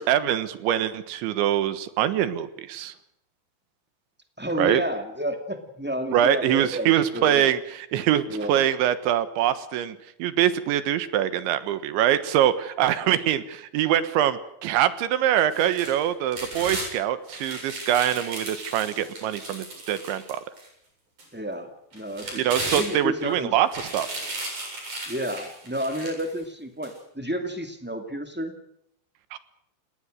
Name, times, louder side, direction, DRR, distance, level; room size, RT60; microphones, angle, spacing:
voice 1, 0.0-2.9 4.6-4.8 6.1-20.4 22.4-24.1 29.3-29.4, right 11 dB, 85° right, 13 dB, 3.7 m, -24 dB
voice 2, 4.4-7.5 8.3-8.7 13.0-13.2 21.3-22.4 22.7-23.5 25.1-28.5, equal, 15° right, 5 dB, 0.4 m, -31 dB
sound 1, 15.5-16.9 17.3-20.7 21.2-21.3 21.9-23.3 23.7-26.3 26.8-26.9, right 2 dB, 40° right, 9.0 m, -35 dB
29.0 x 19.0 x 6.6 m, 0.75 s
omnidirectional pair, 5.2 m